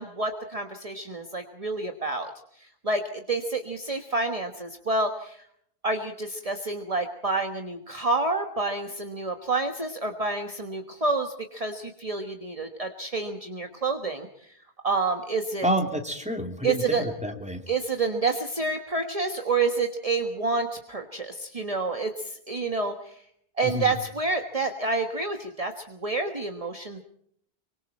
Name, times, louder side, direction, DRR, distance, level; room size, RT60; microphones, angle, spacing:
voice 1, 0.0-2.3 2.6-5.4 5.8-14.3 14.8-15.7 16.6-17.0 17.7-23.1 23.6-27.0, right 3 dB, 35° right, 4 dB, 1.5 m, -28 dB
voice 2, 15.6-17.6 23.7-23.9, equal, 5° right, 3 dB, 3.0 m, -28 dB
25.5 x 24.5 x 4.4 m, 0.68 s
omnidirectional pair, 1.1 m